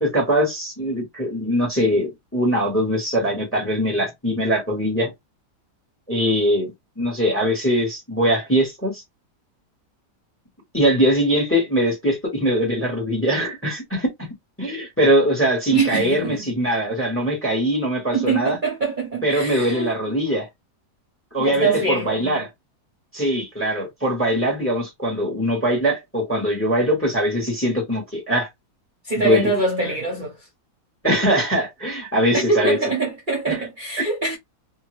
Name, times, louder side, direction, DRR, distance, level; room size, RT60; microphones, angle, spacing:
voice 1, 0.0-5.1 6.1-6.7 7.0-9.0 10.7-14.3 14.6-18.6 19.2-20.5 21.3-22.5 23.1-28.5 29.2-29.5 31.0-32.8 33.5-33.6, equal, 10° left, 1.0 m, -21 dB
voice 2, 15.7-16.5 18.1-19.9 21.4-22.4 29.0-30.4 32.3-34.4, right 3 dB, 35° right, 1.0 m, -23 dB
2.8 x 2.5 x 3.0 m
omnidirectional pair, 1.8 m